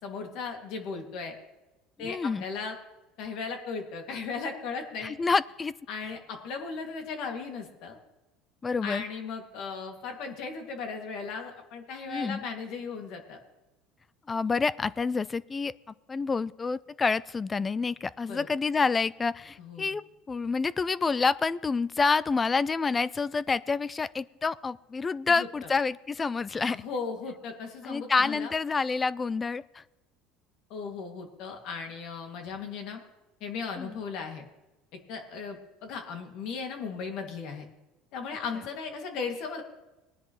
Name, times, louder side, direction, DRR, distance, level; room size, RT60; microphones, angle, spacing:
voice 1, 0.0-1.3 2.0-2.8 3.2-5.2 5.9-8.0 8.8-13.4 18.3-18.5 19.6-19.9 25.3-25.7 26.7-28.5 30.7-33.0 33.4-34.4 35.1-37.7 38.1-39.6, left 5 dB, 60° left, 3 dB, 2.2 m, -37 dB
voice 2, 2.0-2.4 5.0-5.7 8.6-9.0 12.1-12.4 14.3-15.7 16.1-26.8 27.8-29.8 33.8-34.0, left 4 dB, 20° left, 19 dB, 0.3 m, -28 dB
19.5 x 10.0 x 3.1 m, 1.0 s
supercardioid pair, 125°, 0 cm